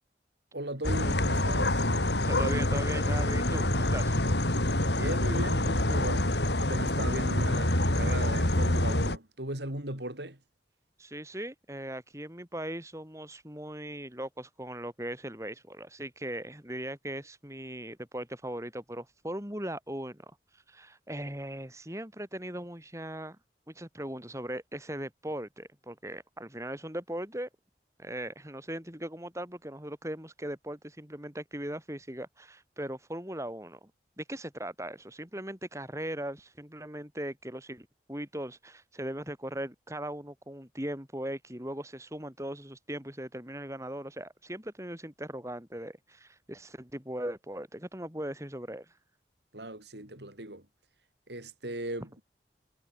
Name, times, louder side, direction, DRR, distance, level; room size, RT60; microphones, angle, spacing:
voice 1, 0.5-1.9 4.9-10.4 49.5-50.7 51.3-52.3, right 1 dB, 75° right, 6.6 m, -38 dB
sound 1, 0.8-9.2, left 1 dB, 75° left, 4.7 m, -26 dB
voice 2, 2.2-4.2 11.0-20.3 20.7-23.4 23.7-27.5 28.0-33.9 34.2-48.9, right 1 dB, 15° right, 5.6 m, -39 dB
head